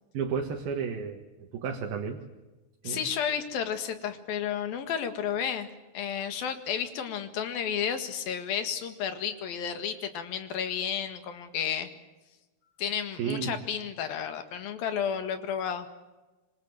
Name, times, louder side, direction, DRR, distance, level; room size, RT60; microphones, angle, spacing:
voice 1, 0.1-2.2 2.8-3.1 13.2-13.6, right 6 dB, 80° right, 2 dB, 3.6 m, -32 dB
voice 2, 2.8-5.7 5.9-11.9 12.8-15.9, left 8 dB, 75° left, 8 dB, 3.6 m, -32 dB
25.5 x 25.0 x 7.7 m, 1.1 s
omnidirectional pair, 4.2 m